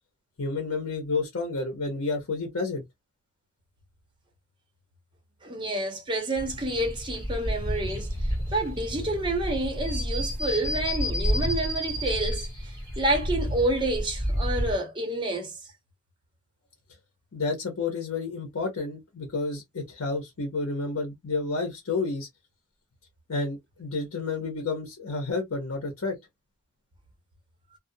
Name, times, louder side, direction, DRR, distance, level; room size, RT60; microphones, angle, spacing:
voice 1, 0.4-2.8 17.3-22.3 23.3-26.2, left 3 dB, 75° left, 0.8 m, -30 dB
voice 2, 5.4-8.1 8.5-15.5, right 1 dB, 20° right, 0.8 m, -29 dB
sound 1, 6.4-14.7, equal, 15° left, 1.2 m, -30 dB
2.4 x 2.1 x 2.6 m
head